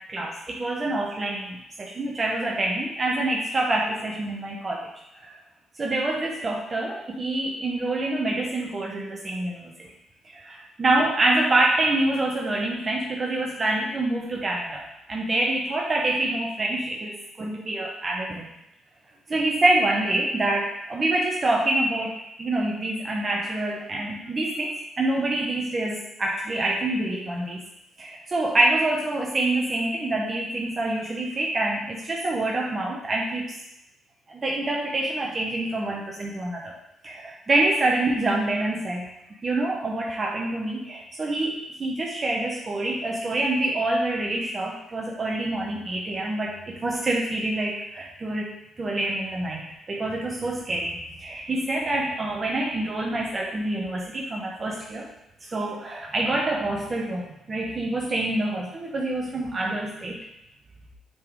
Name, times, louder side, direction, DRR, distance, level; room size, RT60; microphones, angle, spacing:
voice 1, 0.1-4.9 5.1-5.3 5.8-9.7 10.2-18.5 19.3-27.6 28.0-33.5 34.3-36.7 37.0-39.1 39.4-55.1 55.4-60.2, right 2 dB, 35° right, -2 dB, 1.0 m, -26 dB
6.8 x 4.0 x 4.7 m, 0.85 s
cardioid pair, 90°, 0 cm